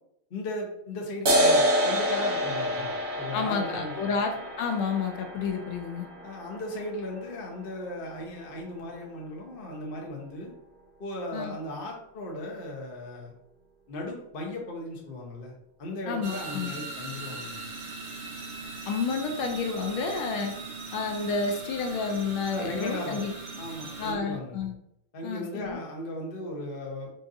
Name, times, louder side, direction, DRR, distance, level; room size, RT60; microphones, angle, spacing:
voice 1, 0.3-4.2 6.2-10.5 11.0-13.3 13.9-15.5 15.8-17.6 22.5-23.2 23.6-24.7 25.1-27.1, left 1 dB, 55° left, -1 dB, 0.6 m, -36 dB
sound 1, 1.3-8.2, equal, 50° right, 1.2 m, -28 dB
voice 2, 3.3-6.1 11.3-11.5 16.1-16.8 18.9-20.5 20.9-23.3 24.0-24.7 25.2-25.8, left 5 dB, 80° left, 4 dB, 1.4 m, -30 dB
sound 2, 16.2-24.1, right 3 dB, 65° right, 0.7 m, -39 dB
5.7 x 2.5 x 2.6 m, 0.79 s
omnidirectional pair, 2.3 m